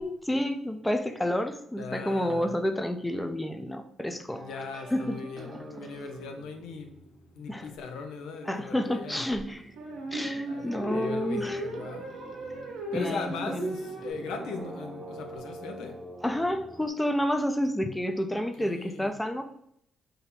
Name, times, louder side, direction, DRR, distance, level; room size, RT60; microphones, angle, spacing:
voice 1, 0.0-5.2 5.5-5.6 7.5-7.7 8.5-9.6 10.1-11.6 12.9-13.8 16.2-19.4, left 1 dB, 10° left, 0.5 m, -30 dB
voice 2, 1.8-2.6 4.4-7.0 7.3-9.2 10.5-12.1 12.9-16.0 18.5-19.2, left 5 dB, 90° left, 0.6 m, -39 dB
sound 1, 4.3-8.4 8.6-16.9, right 2 dB, 40° right, 0.7 m, -46 dB
sound 2, 7.5-7.6 9.8-14.1, right 2 dB, 85° right, 1.1 m, -36 dB
3.9 x 2.7 x 4.2 m
cardioid pair, 90°, 0 cm